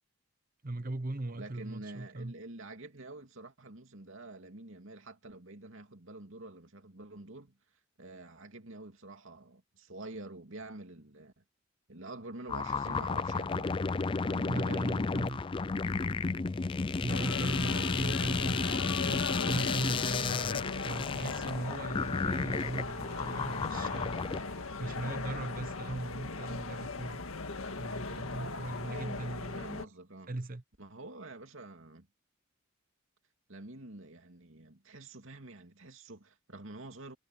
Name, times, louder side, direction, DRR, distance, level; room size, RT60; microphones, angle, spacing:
voice 1, 0.6-2.3 14.5-15.4 17.0-27.2 27.8-29.6 30.3-30.6, right 2 dB, 40° right, 0.9 m, -38 dB
voice 2, 1.4-7.5 8.0-11.4 11.9-13.8 14.2-14.9 28.8-30.3 30.8-32.1 33.5-37.2, right 2 dB, 65° right, 2.7 m, -47 dB
sound 1, 12.5-24.4, left 4 dB, 25° left, 0.3 m, -32 dB
sound 2, 17.1-29.8, left 3 dB, 80° left, 1.8 m, -38 dB
head